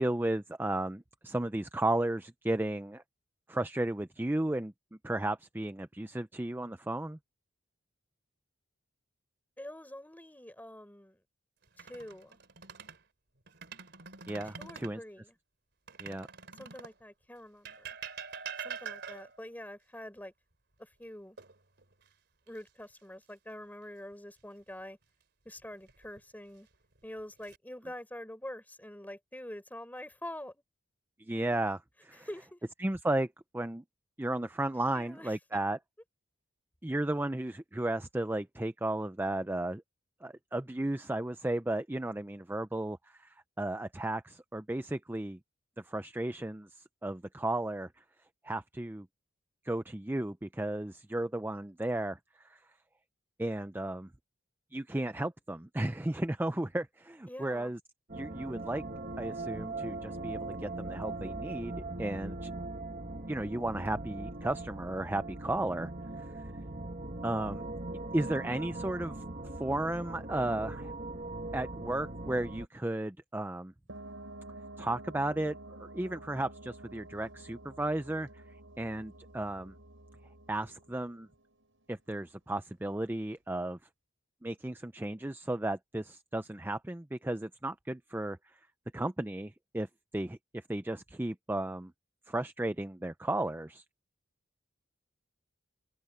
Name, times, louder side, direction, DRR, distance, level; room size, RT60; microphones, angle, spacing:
voice 1, 0.0-3.0 3.5-4.7 5.0-7.2 14.3-15.0 16.0-16.3 31.2-32.3 32.8-33.3 33.5-33.8 34.2-35.8 36.8-39.8 40.2-45.4 45.9-46.7 47.0-47.9 48.4-49.1 49.6-52.2 52.5-52.6 53.4-54.1 54.7-57.8 58.1-58.8 59.2-62.5 63.3-65.9 67.2-67.7 68.1-69.1 69.6-70.9 71.5-73.7 74.8-78.4 78.8-79.7 80.5-81.3 81.9-83.8 84.4-88.4 88.9-89.9 90.1-91.9 92.3-93.8, right 1 dB, 10° right, 0.5 m, -34 dB
voice 2, 9.6-11.2 11.8-12.4 14.6-15.4 16.6-18.0 18.6-20.3 20.8-21.4 22.5-25.0 25.4-26.7 27.0-30.6 32.1-32.6 34.9-35.6 57.3-57.7, left 1 dB, 10° left, 4.3 m, -46 dB
sound 1, 11.6-13.0 13.5-15.0 15.9-17.0 17.7-19.5 21.4-22.1 22.5-22.7 25.6-26.2 26.9-27.6, right 6 dB, 60° right, 3.7 m, -45 dB
sound 2, 58.1-72.7, right 2 dB, 45° right, 1.9 m, -40 dB
sound 3, 73.9-82.0, right 1 dB, 80° right, 5.9 m, -50 dB
open air
head